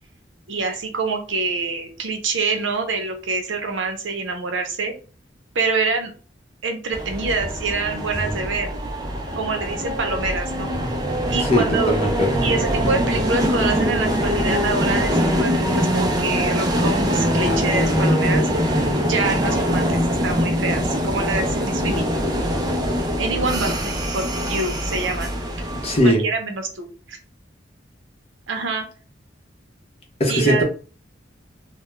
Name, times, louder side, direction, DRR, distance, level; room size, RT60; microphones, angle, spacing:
voice 1, 0.5-4.9 5.5-6.1 6.6-8.7 9.4-10.7 11.3-11.9 12.4-18.5 19.1-22.1 23.2-25.3 26.0-27.2 28.5-28.9 30.3-30.6, right 3 dB, 80° right, 5 dB, 0.6 m, -26 dB
sound 1, 6.9-26.0, equal, 20° right, 0.4 m, -23 dB
voice 2, 11.5-12.3 25.8-26.2 30.2-30.6, equal, 35° left, 1 dB, 0.7 m, -19 dB
2.3 x 2.1 x 3.0 m, 0.37 s
head